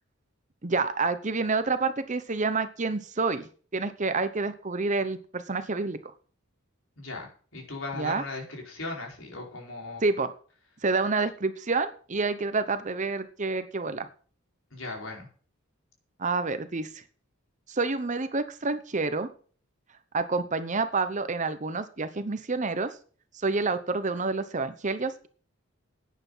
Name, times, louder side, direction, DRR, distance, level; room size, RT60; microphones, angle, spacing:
voice 1, 0.6-3.4 3.7-6.0 7.9-8.2 10.0-10.3 10.8-14.1 16.2-17.0 17.7-19.3 20.1-23.0 23.3-25.3, right 3 dB, 35° right, 11 dB, 0.8 m, -28 dB
voice 2, 7.0-10.0 14.7-15.3, left 2 dB, 70° left, 0 dB, 4.8 m, -38 dB
11.5 x 9.4 x 5.6 m, 0.42 s
head